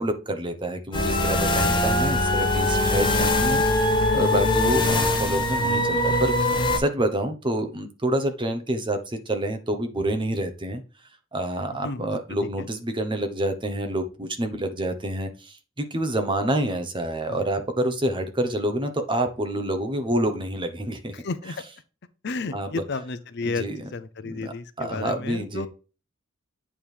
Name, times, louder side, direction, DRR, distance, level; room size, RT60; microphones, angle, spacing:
voice 1, 0.0-3.6 4.1-10.8 11.3-21.1 21.5-21.6 22.5-22.8 23.4-23.8 24.2-25.7, right 1 dB, 25° right, 1.0 m, -28 dB
sound 1, 0.9-6.8, left 1 dB, 25° left, 1.8 m, -22 dB
voice 2, 4.1-4.7 11.8-12.2 12.6-12.7 17.3-17.4 21.1-21.5 22.2-23.6 23.9-25.7, left 3 dB, 60° left, 0.6 m, -32 dB
8.6 x 3.6 x 4.6 m
head